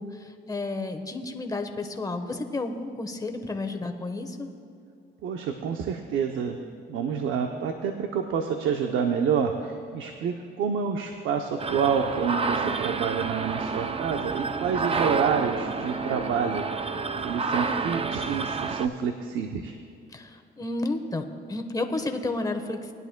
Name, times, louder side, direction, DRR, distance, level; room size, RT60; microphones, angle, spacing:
voice 1, 0.0-4.5 20.1-22.9, left 2 dB, 20° left, 5 dB, 1.1 m, -32 dB
voice 2, 5.2-6.6 6.9-16.6 17.2-19.8, right 6 dB, 80° right, 4 dB, 0.7 m, -28 dB
sound 1, 11.6-18.9, right 4 dB, 30° right, 0.5 m, -29 dB
19.5 x 10.5 x 2.2 m, 2.6 s
cardioid pair, 90°, 20 cm